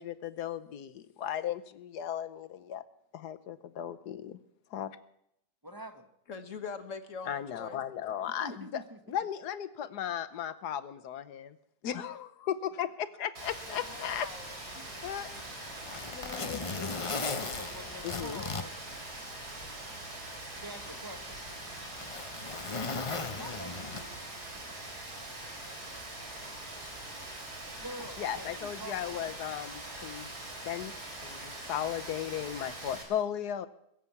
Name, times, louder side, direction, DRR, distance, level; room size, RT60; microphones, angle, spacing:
voice 1, 0.0-2.8 3.1-4.4 4.7-5.0 7.3-8.8 9.1-11.6 11.8-14.3 15.0-15.3 16.1-16.8 18.0-18.4 28.2-30.3 30.6-30.9 31.2-33.7, left 10 dB, 75° left, 13 dB, 1.4 m, -36 dB
voice 2, 5.6-6.1 8.4-9.0 14.7-14.9 15.2-15.3 16.4-16.6 17.0-18.8 20.5-21.4 23.1-24.1 27.8-29.6, right 1 dB, 15° right, 6 dB, 1.2 m, -46 dB
voice 3, 6.3-7.8 13.7-14.6 15.3-15.4, left 5 dB, 50° left, 9 dB, 1.4 m, -43 dB
Rain, 13.4-33.0, right 1 dB, 65° right, 4.5 m, -43 dB
Zipper (clothing), 15.2-19.7 20.0-20.1 20.9-24.4 25.6-25.8, left 4 dB, 35° left, 0.5 m, -38 dB
21.5 x 7.5 x 8.4 m, 0.77 s
omnidirectional pair, 1.8 m